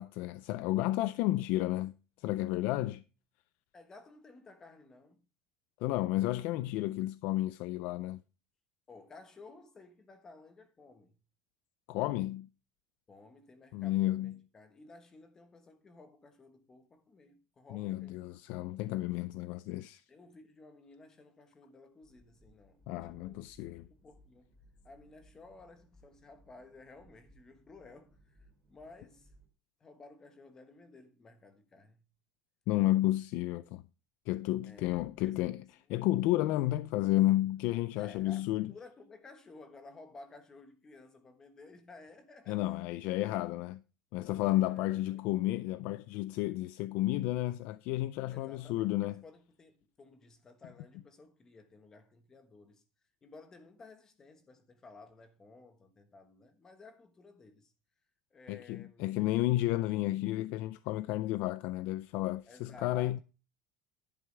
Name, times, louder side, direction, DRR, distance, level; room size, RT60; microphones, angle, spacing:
voice 1, 0.0-3.0 5.8-8.2 11.9-12.5 13.7-14.3 17.7-20.0 22.9-23.9 32.7-33.8 34.3-35.6 35.9-38.7 42.5-43.8 44.1-49.1 58.5-63.2, left 16 dB, 50° left, 0.4 m, -32 dB
voice 2, 3.7-5.3 8.9-11.1 13.1-18.3 20.1-23.5 23.8-24.6 24.8-29.3 29.8-32.0 34.7-36.0 37.9-42.8 44.4-45.4 48.3-52.8 53.2-57.7 58.3-59.2 62.5-63.2, left 3 dB, 15° left, 1.3 m, -55 dB
sound 1, 22.0-29.5, right 1 dB, 10° right, 2.5 m, -64 dB
11.0 x 9.4 x 3.3 m
cardioid pair, 175°, 4 cm